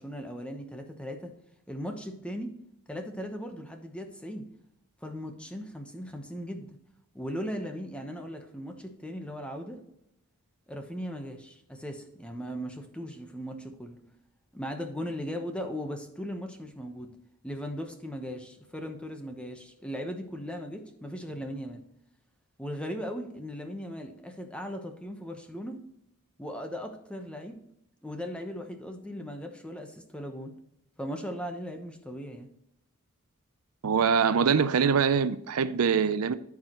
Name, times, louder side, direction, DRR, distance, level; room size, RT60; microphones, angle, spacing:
voice 1, 0.0-1.3 1.7-2.5 2.9-4.5 5.0-6.8 7.1-9.8 10.7-14.0 14.5-17.1 17.4-21.8 22.6-25.8 26.4-27.6 28.0-30.5 31.0-32.5, equal, 5° left, 0.9 m, -38 dB
voice 2, 33.8-36.3, right 6 dB, 80° right, 0.5 m, -24 dB
13.5 x 4.9 x 3.0 m
head